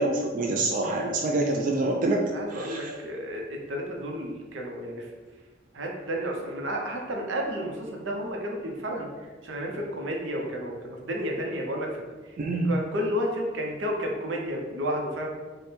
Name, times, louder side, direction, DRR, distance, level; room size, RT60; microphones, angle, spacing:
voice 1, 0.0-3.0 12.4-12.7, right 2 dB, 45° right, 1 dB, 0.3 m, -26 dB
voice 2, 0.8-1.1 2.3-5.1 5.7-9.1 9.4-12.0 12.3-12.4 12.6-15.3, equal, 90° right, 0 dB, 0.7 m, -32 dB
3.3 x 2.1 x 4.3 m, 1.3 s
head